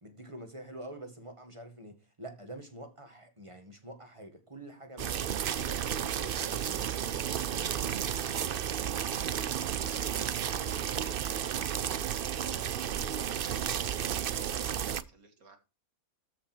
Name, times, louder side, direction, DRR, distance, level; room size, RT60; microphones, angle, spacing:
voice 1, 0.0-6.9 12.6-12.7, right 1 dB, 20° right, 1.9 m, -47 dB
sound 1, 5.0-15.0, right 9 dB, 55° right, 0.6 m, -32 dB
voice 2, 8.9-10.4 13.8-15.6, right 3 dB, 75° right, 2.5 m, -57 dB
13.5 x 5.6 x 4.6 m
omnidirectional pair, 1.5 m